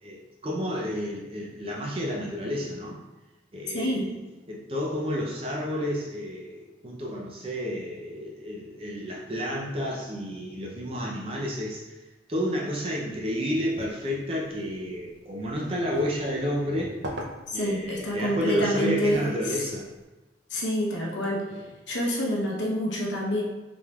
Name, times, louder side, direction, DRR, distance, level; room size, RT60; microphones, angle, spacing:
voice 1, 0.0-3.0 3.5-4.1 4.5-12.0 12.3-17.0 17.5-19.9 21.5-21.6, equal, 30° right, -2 dB, 0.5 m, -31 dB
voice 2, 3.7-4.1 17.5-19.3 20.5-21.5 21.9-23.4, equal, 85° left, -3 dB, 0.9 m, -27 dB
sound 1, 13.5-20.0, right 1 dB, 80° right, 0.6 m, -44 dB
5.0 x 3.3 x 2.3 m, 1.1 s
head